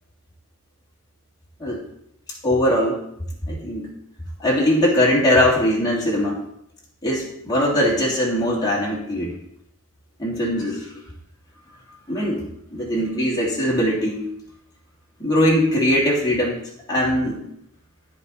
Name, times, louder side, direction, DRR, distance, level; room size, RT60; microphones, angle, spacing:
voice 1, 2.4-3.0 3.5-3.9 4.4-6.4 7.0-9.3 10.2-10.8 12.1-14.2 15.2-16.6 16.9-17.4, equal, 20° left, -5 dB, 3.0 m, -21 dB
14.5 x 4.9 x 4.2 m, 0.73 s
head